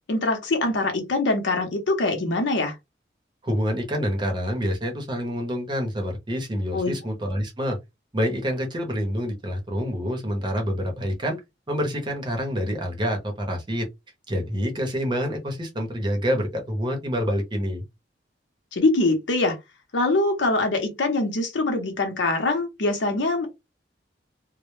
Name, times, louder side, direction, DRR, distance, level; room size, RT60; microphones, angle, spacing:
voice 1, 0.1-2.7 6.7-6.9 18.7-19.6 19.9-23.5, left 2 dB, 75° left, 0.7 m, -23 dB
voice 2, 3.4-7.8 8.1-11.4 11.7-13.9 14.3-17.8, equal, 25° right, 0.7 m, -27 dB
2.1 x 2.0 x 3.1 m
head